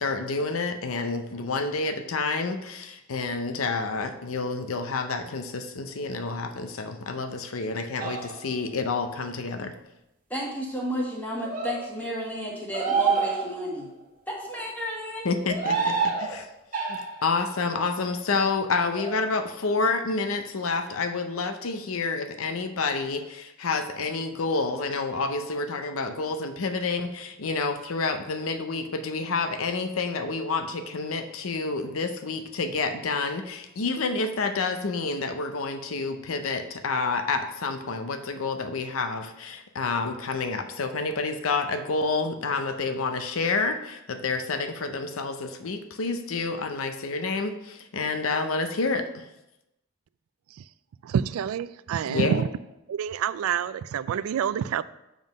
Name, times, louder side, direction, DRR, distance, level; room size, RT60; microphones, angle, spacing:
voice 1, 0.0-9.7 15.2-16.5 16.9-49.2 52.1-52.5, left 4 dB, 80° left, 8 dB, 0.7 m, -29 dB
sound 1, 8.0-8.5 11.4-11.8 12.7-13.8 15.4-16.3 16.7-17.3 18.9-19.2, right 5 dB, 40° right, 1.3 m, -27 dB
voice 2, 10.3-13.9 14.3-15.3, equal, 10° left, -3 dB, 1.6 m, -32 dB
voice 3, 51.0-52.5 52.9-54.8, right 8 dB, 85° right, 17 dB, 0.3 m, -27 dB
7.2 x 3.9 x 5.2 m, 0.91 s
head